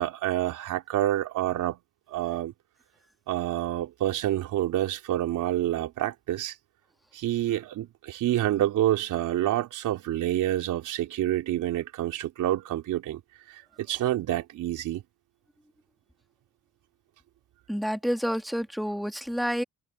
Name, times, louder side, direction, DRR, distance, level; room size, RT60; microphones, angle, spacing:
voice 1, 0.0-1.8 2.1-2.5 3.3-6.5 7.1-13.2 13.5-15.0, right 13 dB, 85° right, 4.0 m, -28 dB
voice 2, 17.7-19.6, equal, ahead, 2.2 m, -29 dB
cardioid pair, 90°, 30 cm